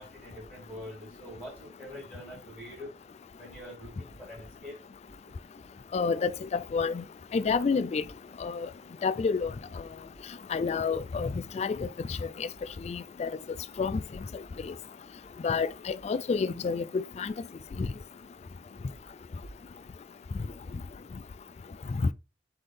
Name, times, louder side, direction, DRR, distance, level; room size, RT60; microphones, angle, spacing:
voice 1, 0.0-2.9 3.4-4.8, left 1 dB, 5° right, 3.7 m, -44 dB
voice 2, 5.9-7.0 7.3-8.0 8.4-8.7 9.0-9.5 10.5-12.5 12.8-13.3 13.8-14.0 14.7-14.8 15.4-17.3 17.8-17.9, left 5 dB, 35° left, 0.3 m, -29 dB
7.7 x 3.8 x 3.3 m
head